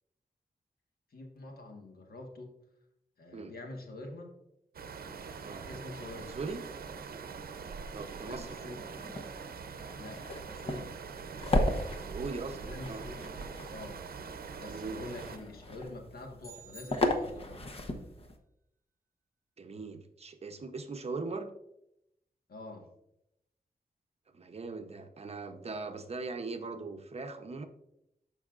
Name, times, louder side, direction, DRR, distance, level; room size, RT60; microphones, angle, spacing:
voice 1, 1.1-2.6 3.2-4.3 5.6-6.4 7.2-7.4 8.2-8.9 10.0-10.9 12.5-14.0 14.6-17.6 22.5-22.9, left 2 dB, 80° left, 2 dB, 1.5 m, -46 dB
sound 1, 4.7-15.4, right 5 dB, 80° right, 0.6 m, -43 dB
voice 2, 7.9-8.8 12.0-13.0 14.7-15.0 19.6-21.5 24.3-27.7, right 3 dB, 40° right, 6 dB, 0.7 m, -40 dB
sound 2, 8.8-18.4, left 1 dB, 40° left, 0.9 m, -36 dB
sound 3, 16.4-17.7, right 2 dB, 20° left, 1.7 m, -53 dB
13.5 x 5.4 x 2.5 m, 0.82 s
wide cardioid pair, 165°, 15 cm